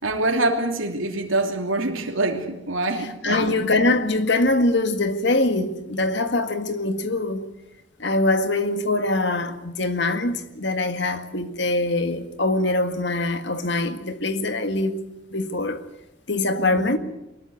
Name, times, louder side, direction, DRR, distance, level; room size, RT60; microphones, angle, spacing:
voice 1, 0.0-3.6 16.6-16.9, right 2 dB, 85° right, 2.9 m, -25 dB
voice 2, 3.2-7.5 8.0-15.0 15.3-15.8 16.3-17.0, left 2 dB, 60° left, 1.8 m, -23 dB
23.0 x 20.0 x 8.1 m
head